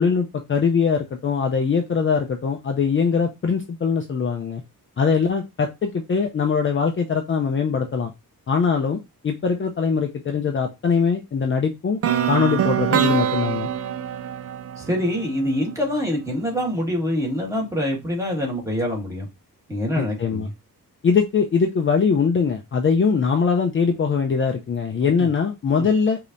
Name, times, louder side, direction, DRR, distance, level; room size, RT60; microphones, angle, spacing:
voice 1, 0.0-4.6 5.0-8.1 8.5-12.0 12.3-13.7 20.0-20.5 21.0-26.2, left 5 dB, 35° left, 0.5 m, -22 dB
sound 1, 12.0-16.0, right 9 dB, 45° right, 0.4 m, -24 dB
voice 2, 14.8-19.3 19.7-20.5 25.2-25.3 25.8-25.9, equal, 10° right, 1.7 m, -25 dB
5.0 x 2.9 x 2.5 m
wide cardioid pair, 150°, 35 cm